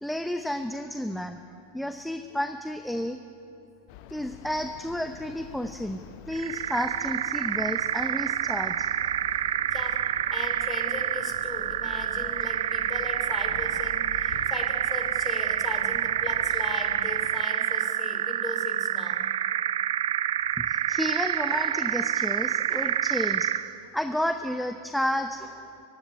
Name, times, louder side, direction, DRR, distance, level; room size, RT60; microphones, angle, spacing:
voice 1, 0.0-1.4 1.7-3.2 4.1-6.0 6.3-8.9 20.6-23.5 23.9-25.9, left 1 dB, ahead, 8 dB, 0.9 m, -31 dB
sound 1, 3.9-17.5, left 12 dB, 45° left, 0.8 m, -47 dB
sound 2, 6.3-23.7, right 11 dB, 60° right, 0.7 m, -27 dB
voice 2, 10.3-19.2, left 4 dB, 20° left, 5 dB, 3.2 m, -38 dB
25.0 x 16.0 x 10.0 m, 2.8 s
figure-of-eight pair, 90°, 0 cm